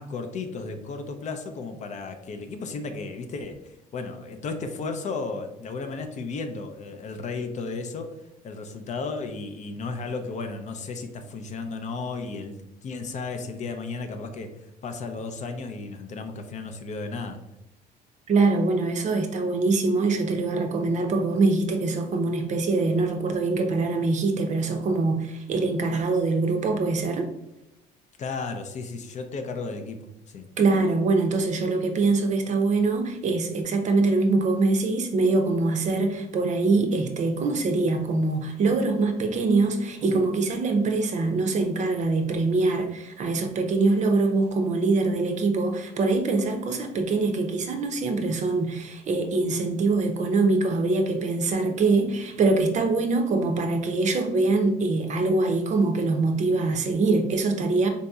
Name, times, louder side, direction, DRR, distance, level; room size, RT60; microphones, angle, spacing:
voice 1, 0.0-17.4 28.2-30.5, left 4 dB, 45° left, 6 dB, 0.5 m, -34 dB
voice 2, 18.3-27.3 30.6-57.9, right 3 dB, 45° right, 5 dB, 0.5 m, -23 dB
4.0 x 2.7 x 2.3 m, 0.88 s
cardioid pair, 110°, 17 cm